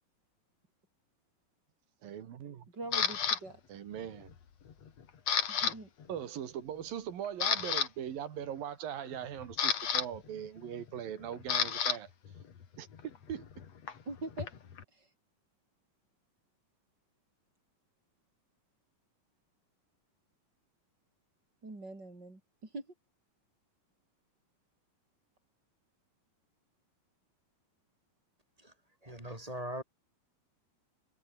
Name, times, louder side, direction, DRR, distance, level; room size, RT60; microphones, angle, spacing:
voice 1, 2.0-2.7 3.7-4.3 6.1-12.1 12.8-13.5, right 9 dB, 85° right, 3.9 m, -40 dB
voice 2, 2.7-3.6 5.5-5.9 14.1-14.5 15.0-15.1 21.6-22.4 22.7-22.9, right 2 dB, 30° right, 6.7 m, -43 dB
Camera, 2.9-3.4 4.0-4.3 4.7-5.7 6.0-6.2 6.8-6.9 7.3-7.9 9.1-12.0 12.3-14.8, left 7 dB, 50° left, 3.3 m, -32 dB
voice 3, 29.0-29.8, right 1 dB, 10° right, 4.1 m, -40 dB
omnidirectional pair, 4.0 m